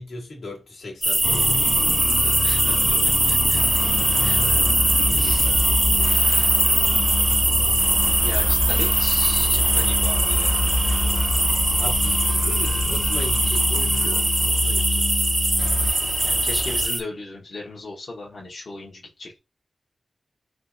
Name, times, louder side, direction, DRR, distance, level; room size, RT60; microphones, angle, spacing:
voice 1, 0.0-3.1 4.2-6.3 8.8-8.9 9.4-9.6 11.8-15.2, left 2 dB, 80° left, 1.3 m, -38 dB
sound 1, 1.0-17.0, right 1 dB, 25° right, 0.7 m, -21 dB
sound 2, 1.2-15.9, left 2 dB, 35° left, 0.3 m, -27 dB
voice 2, 2.4-2.9 3.3-3.8 4.2-4.4 5.1-5.5 8.2-10.6 16.2-19.4, left 2 dB, 60° left, 0.9 m, -36 dB
sound 3, 3.5-13.8 15.6-16.9, right 1 dB, 80° right, 0.9 m, -31 dB
3.5 x 2.7 x 2.5 m
cardioid pair, 50°, 0 cm